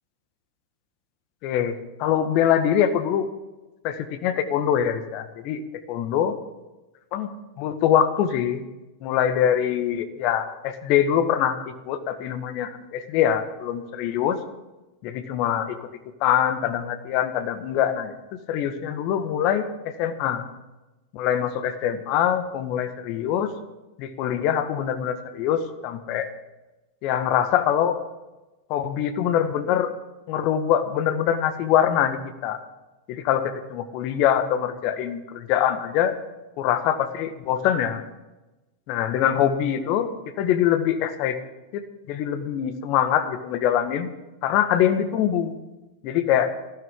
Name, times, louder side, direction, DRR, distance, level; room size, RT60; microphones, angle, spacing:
voice 1, 1.4-1.7 2.0-3.3 3.8-6.3 7.1-8.6 9.0-11.6 11.9-14.4 15.0-15.8 16.2-18.1 18.5-19.6 20.0-20.5 21.1-23.5 24.0-26.3 27.0-28.0 28.7-29.9 30.3-32.6 33.1-36.2 36.6-38.0 38.9-40.1 40.4-41.3 41.7-41.8 42.1-44.1 44.4-45.5 46.0-46.5, left 10 dB, 45° left, 9 dB, 1.8 m, -23 dB
20.0 x 15.5 x 3.8 m, 1.0 s
figure-of-eight pair, 90°, 0 cm